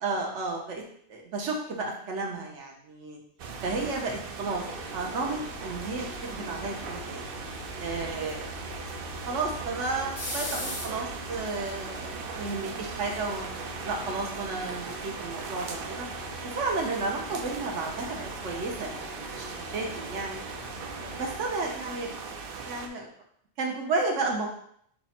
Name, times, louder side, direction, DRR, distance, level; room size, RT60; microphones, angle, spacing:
voice 1, 0.0-0.8 1.1-3.2 3.6-7.2 7.8-8.5 9.3-13.5 13.8-16.1 16.4-20.4 21.0-22.1 22.6-23.1 23.6-24.5, right 3 dB, 80° right, 0 dB, 1.1 m, -32 dB
sound 1, 3.4-22.9, right 5 dB, 60° right, 0.6 m, -39 dB
sound 2, 4.4-21.5, left 1 dB, 60° left, 1.4 m, -42 dB
5.7 x 2.1 x 4.2 m, 0.66 s
omnidirectional pair, 1.2 m